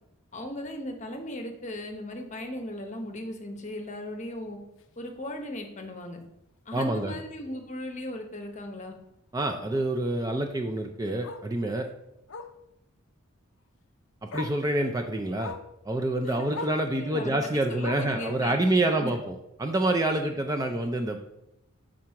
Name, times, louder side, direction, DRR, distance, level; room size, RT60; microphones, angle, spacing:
voice 1, 0.3-4.6 5.0-6.2 6.7-8.9 16.2-16.7 17.0-19.1, left 1 dB, 30° left, 4 dB, 0.8 m, -37 dB
Bark, 4.8-5.0 5.4-5.5 5.8-5.9 6.2-6.3 7.7-7.8 10.3-10.4 11.2-11.5 12.3-12.6 13.8-13.9 14.3-14.6 15.4-15.7 16.5-16.8 17.8-18.2 19.2-19.3, left 4 dB, 55° left, 0.4 m, -39 dB
voice 2, 6.7-7.1 9.3-11.9 14.2-15.5 15.9-21.2, right 1 dB, 15° right, 4 dB, 0.3 m, -27 dB
6.0 x 3.7 x 5.7 m, 0.87 s
head